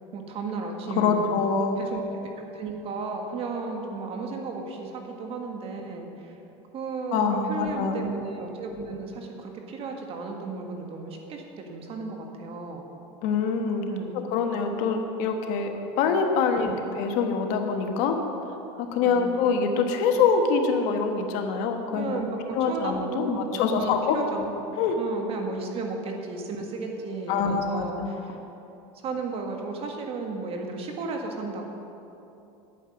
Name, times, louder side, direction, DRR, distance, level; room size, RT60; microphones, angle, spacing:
voice 1, 0.1-1.2 1.8-2.0 2.5-6.3 6.7-12.8 13.9-14.2 16.6-16.8 19.0-19.3 21.9-28.4 29.0-31.6, right 3 dB, 40° right, 3 dB, 1.6 m, -34 dB
voice 2, 0.9-1.8 7.1-8.0 13.2-18.2 18.8-22.2 22.5-24.2 24.8-24.9 27.3-28.2, left 5 dB, 65° left, 5 dB, 1.3 m, -25 dB
10.0 x 9.0 x 6.3 m, 2.9 s
supercardioid pair, 125°, 14 cm